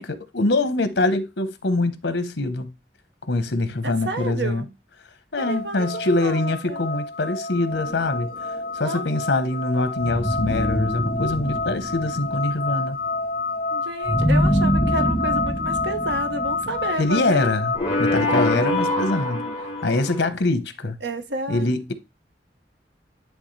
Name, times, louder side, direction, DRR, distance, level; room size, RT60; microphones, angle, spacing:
voice 1, 0.0-2.7 3.3-4.6 5.3-8.3 8.7-13.0 17.0-17.7 18.0-19.4 19.8-21.0 21.5-21.9, left 2 dB, 90° left, 1.0 m, -24 dB
voice 2, 3.8-4.7 5.4-6.8 8.8-9.1 13.7-17.5 18.5-19.6 21.0-21.7, right 2 dB, 85° right, 1.1 m, -31 dB
sound 1, 5.4-17.8, left 3 dB, 55° left, 1.0 m, -29 dB
sound 2, 7.7-8.7 10.0-12.6 14.0-17.2 17.7-20.3, equal, 25° left, 2.6 m, -25 dB
10.5 x 3.6 x 3.2 m
head